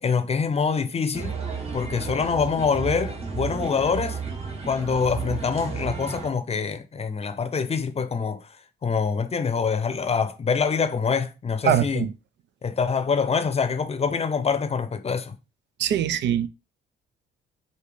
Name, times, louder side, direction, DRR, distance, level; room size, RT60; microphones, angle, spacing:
voice 1, 0.0-1.3 1.7-4.2 4.7-8.5 8.8-12.0 12.6-15.3, left 5 dB, 30° left, 0.6 m, -25 dB
sound 1, 1.1-6.3, right 5 dB, 30° right, 1.1 m, -32 dB
voice 2, 11.6-12.1 15.8-16.5, right 9 dB, 65° right, 0.4 m, -22 dB
4.8 x 2.7 x 3.4 m
cardioid pair, 90°, 20 cm